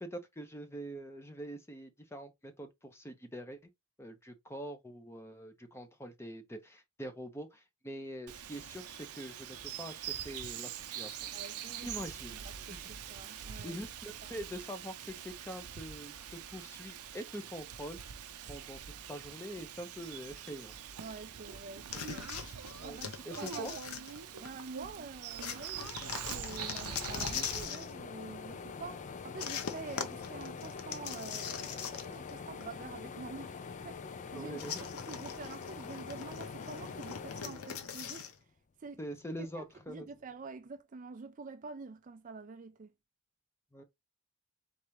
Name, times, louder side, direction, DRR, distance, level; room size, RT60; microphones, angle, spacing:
voice 1, 0.0-3.6 4.0-11.2 11.8-12.3 12.7-12.8 13.6-18.0 18.5-18.8 19.1-20.7 22.8-23.0 23.3-23.7 34.3-34.8 39.0-40.1 43.7-43.8, equal, 10° left, 0.7 m, -44 dB
Bird vocalization bird call bird song, 8.3-27.6, right 8 dB, 85° right, 0.6 m, -44 dB
voice 2, 11.3-12.1 12.3-13.8 14.2-14.4 21.0-22.3 22.8-24.0 24.4-38.3 38.8-39.0 39.4-42.9, right 4 dB, 35° right, 0.4 m, -47 dB
sound 1, 21.9-24.6 25.4-27.9 29.4-32.3 32.6-32.7 34.6-38.3, left 7 dB, 80° left, 0.8 m, -41 dB
sound 2, 25.8-38.4 38.9-40.0, left 5 dB, 35° left, 0.3 m, -45 dB
4.0 x 3.4 x 3.1 m
head